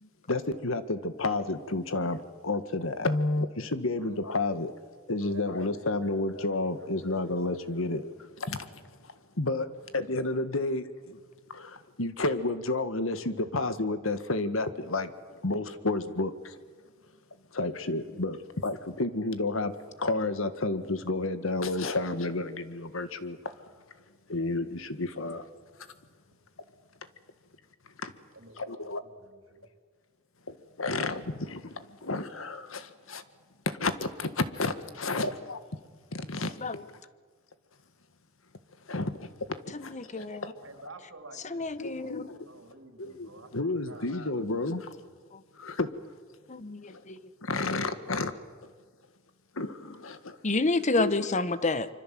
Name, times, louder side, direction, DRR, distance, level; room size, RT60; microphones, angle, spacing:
voice 1, 0.0-4.7 5.1-9.7 9.9-11.2 11.5-15.1 15.4-16.6 17.5-23.7 24.3-25.5 28.0-28.1 28.6-29.0 30.5-33.2 33.7-35.6 36.1-36.6 38.9-40.6 41.8-42.5 43.0-44.9 45.5-45.9 46.9-47.0 47.4-48.3 49.6-50.4 50.9-51.3, left 2 dB, 80° left, 11 dB, 1.7 m, -31 dB
voice 2, 5.2-6.5 6.8-7.8 28.3-29.7 40.6-42.2 42.4-43.5 43.9-44.4, right 2 dB, 90° right, 5 dB, 3.6 m, -51 dB
voice 3, 39.9-40.5 41.5-42.2 46.5-47.2 50.4-51.9, left 3 dB, 35° left, 14 dB, 1.1 m, -29 dB
25.5 x 25.0 x 7.7 m, 1.5 s
head